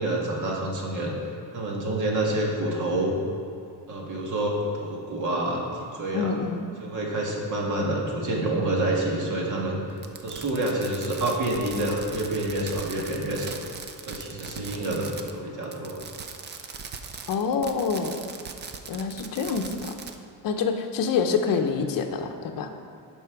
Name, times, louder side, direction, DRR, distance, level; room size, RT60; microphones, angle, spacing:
voice 1, 0.0-3.1 3.9-6.3 6.8-9.8 10.2-13.6 14.1-16.0, right 1 dB, 45° right, -2 dB, 1.7 m, -28 dB
voice 2, 6.1-6.7 17.3-18.2 18.9-19.9 20.4-22.7, left 5 dB, 55° left, 5 dB, 0.8 m, -26 dB
Fireworks, 10.0-15.4 15.6-20.1, right 5 dB, 25° right, 0.4 m, -40 dB
11.0 x 5.6 x 4.7 m, 2.4 s
cardioid pair, 165°, 42 cm